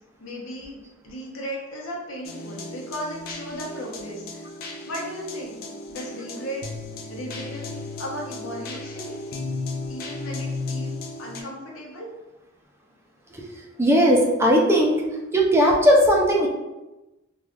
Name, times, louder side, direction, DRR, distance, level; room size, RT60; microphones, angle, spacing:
voice 1, 0.2-4.4 4.9-6.6 7.1-7.7 8.0-9.1 9.9-12.1, equal, 75° left, -2 dB, 0.8 m, -36 dB
sound 1, 2.2-11.4, left 3 dB, 45° left, 0.4 m, -35 dB
voice 2, 13.8-15.0 15.3-16.5, equal, 15° right, -1 dB, 0.4 m, -18 dB
3.1 x 2.3 x 2.4 m, 1.0 s
head